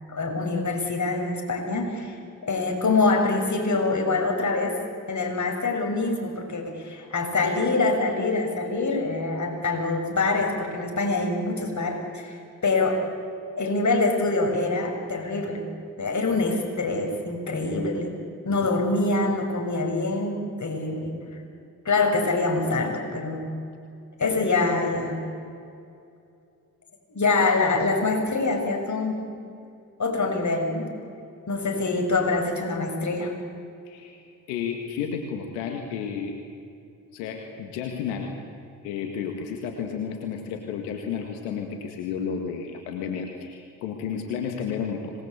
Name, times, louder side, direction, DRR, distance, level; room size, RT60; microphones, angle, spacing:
voice 1, 0.1-2.1 2.4-4.8 5.1-13.0 13.6-15.6 16.0-18.1 18.4-21.1 21.8-23.5 24.2-25.2 27.1-29.2 30.0-30.9 31.5-33.3, left 3 dB, 45° left, 2 dB, 6.7 m, -25 dB
voice 2, 33.9-36.4 37.1-38.3 38.8-45.1, left 7 dB, 90° left, 3 dB, 2.1 m, -32 dB
26.0 x 20.5 x 8.4 m, 2.5 s
hypercardioid pair, 45°, 42 cm